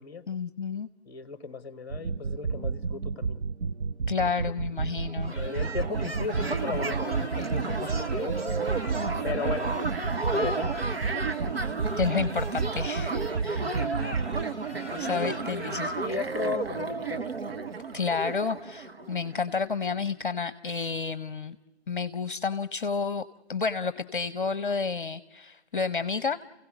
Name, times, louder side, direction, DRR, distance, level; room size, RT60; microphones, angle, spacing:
voice 1, 0.3-0.9 4.1-5.3 12.0-13.7 15.0-15.9 17.9-21.6 21.9-23.2 23.5-26.4, left 5 dB, 50° left, 14 dB, 0.8 m, -30 dB
voice 2, 1.0-3.5 4.2-4.3 5.3-8.6 9.2-9.7 10.3-10.9 14.8-17.3, left 5 dB, 20° left, 14 dB, 1.3 m, -36 dB
sound 1, 1.9-14.5, right 4 dB, 80° right, 0.8 m, -31 dB
sound 2, 4.7-4.8 5.0-19.6, right 4 dB, 60° right, 1.4 m, -33 dB
sound 3, 5.3-16.1, equal, 10° right, 1.3 m, -43 dB
29.5 x 16.5 x 8.0 m, 1.0 s
figure-of-eight pair, 145°, 34 cm